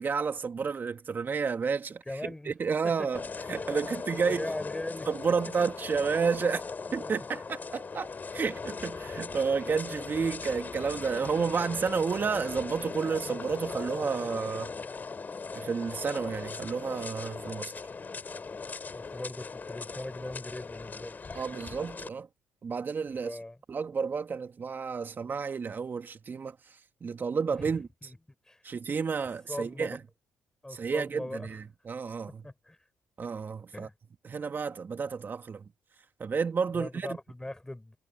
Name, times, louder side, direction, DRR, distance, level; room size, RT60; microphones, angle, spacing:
voice 1, 0.0-3.2 3.5-4.5 5.1-6.6 6.9-14.7 15.5-17.7 21.3-22.3 22.6-23.4 23.7-27.9 28.6-30.0 30.7-32.4 33.2-33.9 34.2-35.7 36.2-37.2, right 5 dB, 45° right, 2.6 m, -31 dB
voice 2, 2.1-2.5 2.8-2.9 3.5-3.7 4.3-5.1 7.0-7.2 18.9-21.2 23.1-23.6 27.6-27.7 28.0-28.2 28.5-28.6 29.5-30.0 30.6-31.5 32.4-32.8 33.7-33.9 36.7-38.0, left 1 dB, 10° left, 5.7 m, -40 dB
sound 1, 3.1-22.1, left 4 dB, 35° left, 3.9 m, -39 dB
supercardioid pair, 60°, 5 cm